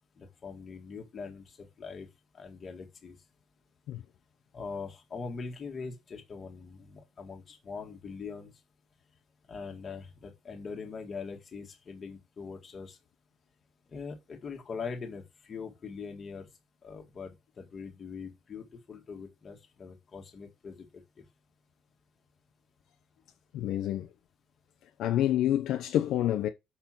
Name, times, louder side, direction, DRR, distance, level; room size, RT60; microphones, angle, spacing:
voice 1, 0.2-2.1 2.3-3.2 4.5-8.5 9.5-13.0 13.9-16.5 16.8-20.9 21.2-21.3, left 5 dB, 25° left, 1.9 m, -42 dB
voice 2, 23.5-24.1 25.0-26.5, left 12 dB, 55° left, 0.8 m, -28 dB
6.9 x 5.6 x 5.9 m
cardioid pair, 170°, 0 cm